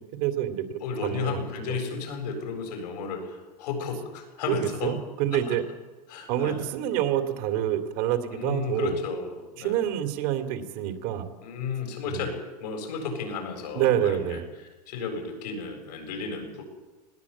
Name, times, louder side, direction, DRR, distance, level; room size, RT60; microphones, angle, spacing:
voice 1, 0.0-1.8 4.5-5.6 6.3-9.0 9.6-11.3 12.1-12.3 13.7-14.4, right 11 dB, 65° right, 7 dB, 2.7 m, -27 dB
voice 2, 0.8-4.9 5.3-5.6 6.1-6.6 8.3-9.8 11.4-16.6, left 5 dB, 85° left, 3 dB, 7.6 m, -33 dB
20.5 x 17.0 x 8.6 m, 1.2 s
supercardioid pair, 115°, 20 cm